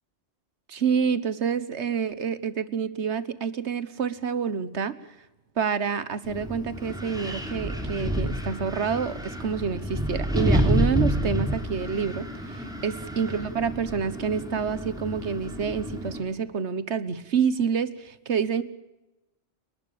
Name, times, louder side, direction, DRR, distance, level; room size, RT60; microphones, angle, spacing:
voice 1, 0.7-5.0 5.6-18.6, right 6 dB, 85° right, 15 dB, 1.5 m, -28 dB
Wind, 6.2-16.2, equal, 5° right, 3.5 m, -29 dB
29.5 x 12.0 x 8.6 m, 0.98 s
omnidirectional pair, 1.1 m